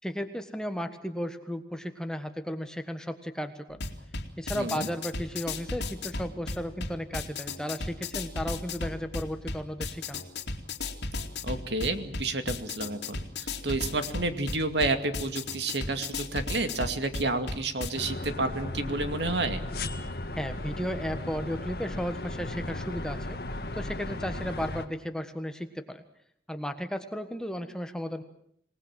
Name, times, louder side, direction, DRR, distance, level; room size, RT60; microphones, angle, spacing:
voice 1, 0.0-3.8 4.4-10.2 20.3-23.4 23.7-26.0 26.5-28.2, equal, 5° left, 7 dB, 1.5 m, -34 dB
sound 1, 3.7-17.9, left 3 dB, 75° left, 2.7 m, -36 dB
voice 2, 4.5-4.9 11.4-19.6, right 2 dB, 85° right, 8 dB, 2.4 m, -30 dB
sound 2, 17.9-24.9, left 2 dB, 60° left, 1.9 m, -36 dB
26.5 x 19.5 x 7.7 m, 0.68 s
head